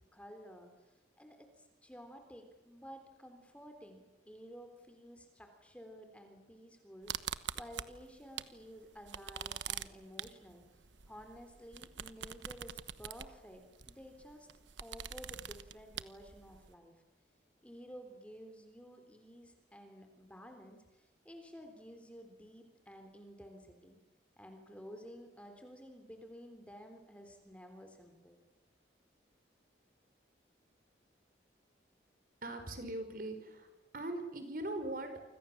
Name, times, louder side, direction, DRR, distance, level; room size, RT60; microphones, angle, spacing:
voice 1, 0.1-10.6 11.1-14.5 14.8-16.9 17.6-24.0 24.4-28.4, equal, 5° left, 5 dB, 3.6 m, -53 dB
sound 1, 7.1-8.6 8.9-16.7, right 9 dB, 85° right, 1.1 m, -44 dB
voice 2, 32.4-33.7 33.9-35.1, right 1 dB, 50° right, 7 dB, 5.0 m, -40 dB
28.5 x 25.5 x 7.3 m, 1.1 s
head